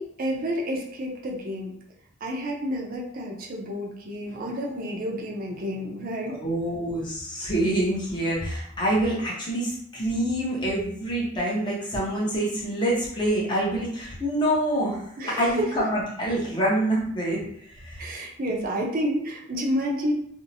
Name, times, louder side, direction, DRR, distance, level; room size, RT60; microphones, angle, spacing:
voice 1, 0.0-1.7 2.2-6.4 15.2-15.9 18.0-20.1, equal, 45° right, -1 dB, 0.5 m, -30 dB
voice 2, 6.3-15.0 15.2-17.4 17.7-18.1 18.5-18.6, right 1 dB, 25° left, -5 dB, 0.7 m, -26 dB
2.6 x 2.0 x 2.6 m, 0.69 s
head